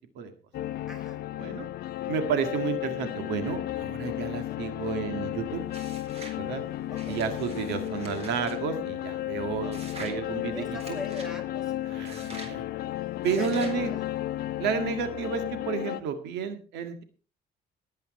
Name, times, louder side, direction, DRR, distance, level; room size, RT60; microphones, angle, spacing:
sound 1, 0.5-16.0, left 14 dB, 65° left, 0.7 m, -33 dB
voice 1, 0.9-1.2 6.9-7.2 9.6-10.0 10.5-12.1 13.2-14.0, left 2 dB, 5° right, 5 dB, 4.4 m, -41 dB
voice 2, 2.1-5.6 6.4-6.6 7.1-10.8 11.9-12.6 13.2-13.9 14.6-17.0, right 7 dB, 90° right, 8 dB, 1.8 m, -31 dB
sound 2, 5.7-6.4 6.9-8.6 9.7-10.2 10.8-11.3 12.0-12.6 13.2-13.8, right 2 dB, 35° right, 4.1 m, -45 dB
18.0 x 8.7 x 4.2 m, 0.38 s
cardioid pair, 110°, 17 cm